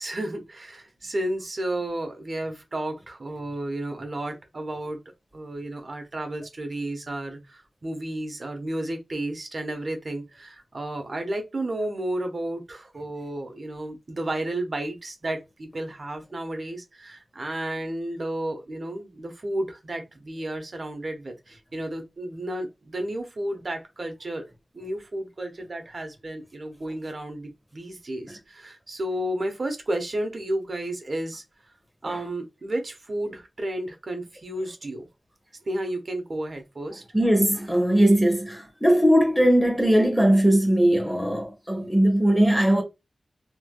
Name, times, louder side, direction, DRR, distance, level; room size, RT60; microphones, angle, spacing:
voice 1, 0.0-5.0 5.3-24.5 24.7-31.4 32.0-35.1 35.7-37.0, right 1 dB, 55° right, 1.0 m, -32 dB
voice 2, 37.1-42.8, right 1 dB, 5° right, 1.4 m, -20 dB
3.2 x 3.0 x 2.3 m
wide cardioid pair, 65°, 0 cm